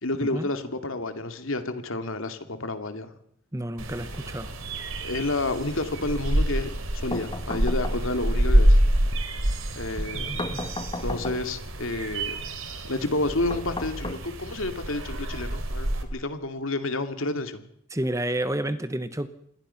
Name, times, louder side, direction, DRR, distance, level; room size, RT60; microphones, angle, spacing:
voice 1, 0.0-3.2 5.0-8.8 9.7-10.5 11.0-12.4 12.8-17.6, left 2 dB, 70° left, 8 dB, 2.5 m, -30 dB
voice 2, 3.5-4.5 10.1-10.7 17.9-19.3, right 1 dB, 15° right, 12 dB, 1.0 m, -30 dB
sound 1, 3.8-16.0, right 1 dB, 70° right, 3.3 m, -27 dB
sound 2, 7.1-8.4 10.4-11.7 13.5-14.7, left 2 dB, 20° left, 1.5 m, -35 dB
27.5 x 21.5 x 5.8 m, 0.67 s
head